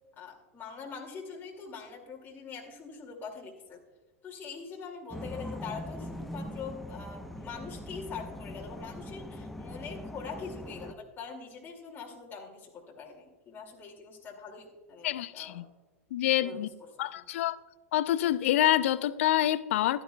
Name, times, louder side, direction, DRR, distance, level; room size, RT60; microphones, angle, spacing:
voice 1, 0.2-3.8 4.2-15.6 16.4-16.7 17.1-17.2, left 5 dB, 25° left, 2.3 m, -43 dB
sound 1, 5.1-10.9, left 1 dB, ahead, 0.8 m, -41 dB
voice 2, 15.0-15.6 16.1-16.7 17.0-17.6 17.9-20.0, left 13 dB, 65° left, 0.5 m, -27 dB
15.5 x 12.0 x 2.2 m
hypercardioid pair, 90°, 7 cm